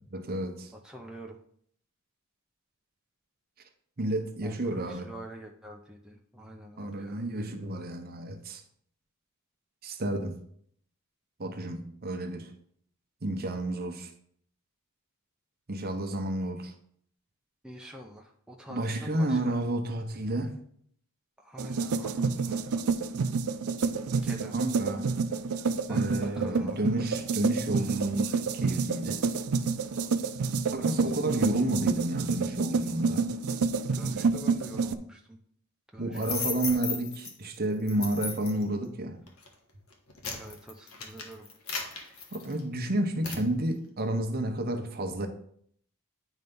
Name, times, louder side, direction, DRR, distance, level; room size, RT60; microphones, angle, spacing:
voice 1, 0.1-0.7 4.0-5.1 6.8-8.6 9.8-10.4 11.4-12.5 13.2-14.1 15.7-16.7 18.7-20.5 24.5-25.1 25.9-29.2 30.7-33.3 36.0-39.2 42.3-45.3, right 1 dB, 45° right, 0.8 m, -31 dB
voice 2, 0.7-1.4 4.4-7.2 17.6-19.6 21.4-22.8 24.1-24.6 25.9-26.8 30.7-31.2 33.9-35.4 35.9-36.8 40.3-41.5, right 1 dB, 5° right, 0.5 m, -46 dB
sound 1, 21.6-34.9, right 4 dB, 75° right, 0.5 m, -29 dB
sound 2, 36.1-37.3 37.9-38.6 39.3-39.5 39.9-42.8 43.2-43.5, left 4 dB, 70° left, 1.2 m, -35 dB
9.2 x 3.3 x 5.3 m
head